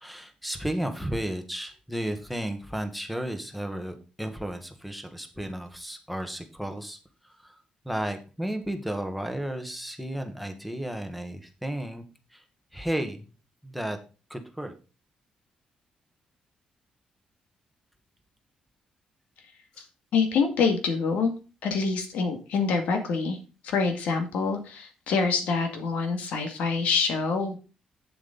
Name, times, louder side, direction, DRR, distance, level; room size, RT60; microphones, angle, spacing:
voice 1, 0.0-7.0 7.2-7.6 7.8-12.0 12.3-12.4 12.7-13.3 13.6-14.0 14.3-14.7, right 1 dB, ahead, 7 dB, 1.2 m, -33 dB
voice 2, 20.1-21.3 21.6-23.4 23.6-27.6, left 5 dB, 85° left, 5 dB, 2.0 m, -26 dB
8.4 x 7.5 x 3.9 m, 0.33 s
cardioid pair, 165°, 2 cm